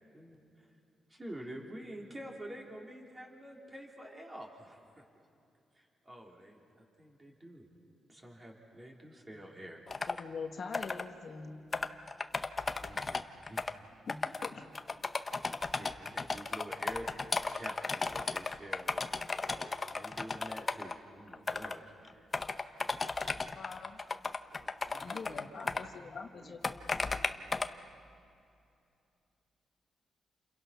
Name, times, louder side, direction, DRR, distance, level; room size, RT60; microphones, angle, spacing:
voice 1, 0.1-0.7 1.1-5.0 5.7-7.7 8.1-10.1 12.8-13.6 14.2-14.3 15.8-17.1 17.5-19.1 19.4-22.3, equal, 15° right, -1 dB, 3.5 m, -48 dB
sound 1, 9.9-10.2 10.7-11.0 11.7-13.7 14.1-14.5 14.7-20.9 21.3-21.8 22.1-25.8 26.6-27.7, left 3 dB, 25° left, 0.8 m, -35 dB
voice 2, 10.1-11.6 14.1-14.6 23.4-24.0 25.0-27.0, left 5 dB, 45° left, 4 dB, 1.5 m, -44 dB
voice 3, 24.5-25.9 26.3-26.6 26.8-27.7, right 2 dB, 50° right, -1 dB, 4.0 m, -56 dB
29.5 x 28.0 x 5.8 m, 2.6 s
wide cardioid pair, 150°, 0 cm